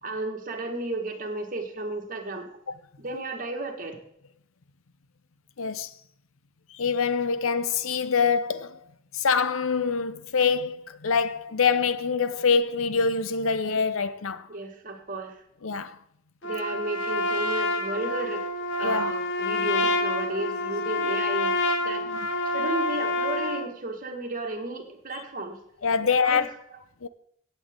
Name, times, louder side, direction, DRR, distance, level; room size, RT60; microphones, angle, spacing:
voice 1, 0.0-2.5 3.0-4.0 14.5-15.4 16.4-18.5 18.8-22.1 22.5-25.6 26.0-26.5, right 2 dB, 40° right, 1.8 m, -33 dB
voice 2, 5.6-5.9 6.7-8.9 9.1-14.5 15.6-16.0 18.8-19.1 22.1-22.2 25.8-26.5 27.0-27.1, left 5 dB, 80° left, 0.7 m, -25 dB
Trumpet, 16.4-23.7, left 2 dB, 60° left, 1.4 m, -27 dB
16.5 x 8.4 x 3.8 m
head